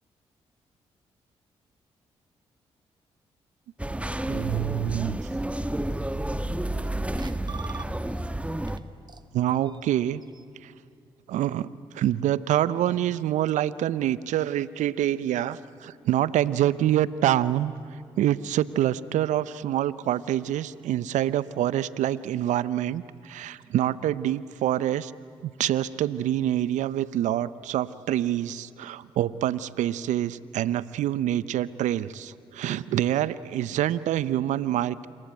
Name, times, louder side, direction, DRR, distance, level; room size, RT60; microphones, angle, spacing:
sound 1, 3.8-8.8, right 1 dB, 10° right, 1.6 m, -30 dB
voice 1, 4.3-5.2 9.3-10.2 10.6-10.7 11.3-25.1 25.4-35.1, right 12 dB, 75° right, 18 dB, 0.8 m, -26 dB
sound 2, 6.8-6.9 7.2-8.3 8.7-8.8 9.1-10.4, right 5 dB, 35° right, 1.3 m, -44 dB
27.5 x 23.0 x 9.2 m, 2.6 s
hypercardioid pair, 45°, 13 cm